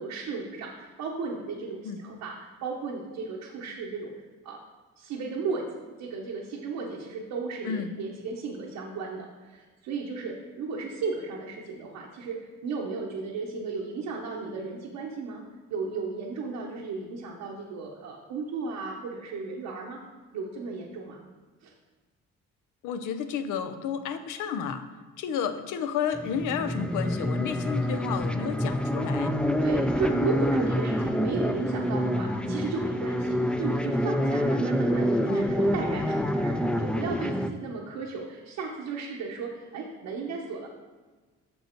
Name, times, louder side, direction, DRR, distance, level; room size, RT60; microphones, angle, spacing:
voice 1, 0.0-4.1 4.4-4.6 5.0-5.7 6.0-15.4 15.7-20.0 20.3-21.2 21.6-21.7 29.6-40.7, right 4 dB, 85° right, -2 dB, 0.9 m, -35 dB
voice 2, 22.8-24.9 25.2-29.3 35.3-35.5, left 7 dB, 85° left, 10 dB, 0.6 m, -31 dB
sound 1, 26.2-37.5, equal, 5° left, 0.3 m, -27 dB
6.5 x 5.4 x 4.4 m, 1.3 s
cardioid pair, 90°, 30 cm